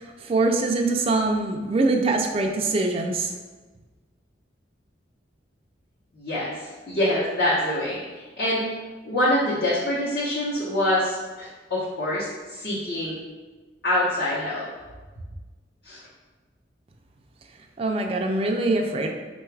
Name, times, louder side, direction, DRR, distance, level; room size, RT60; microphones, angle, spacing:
voice 1, 0.0-3.3 17.8-19.1, right 2 dB, 30° right, 2 dB, 0.3 m, -23 dB
voice 2, 6.2-8.7 9.0-13.2 13.8-14.6 15.8-16.0, left 1 dB, 55° left, -8 dB, 0.8 m, -25 dB
3.8 x 2.3 x 4.5 m, 1.3 s
head